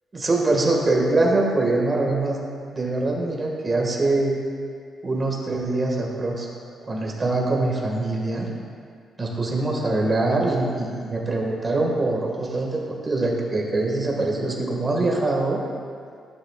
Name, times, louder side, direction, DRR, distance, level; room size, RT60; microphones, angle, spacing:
voice 1, 0.1-2.4 2.7-4.4 5.0-6.5 6.8-8.5 9.2-15.6, right 2 dB, 25° right, -2 dB, 1.8 m, -23 dB
17.5 x 10.5 x 2.4 m, 2.2 s
cardioid pair, 155°, 0 cm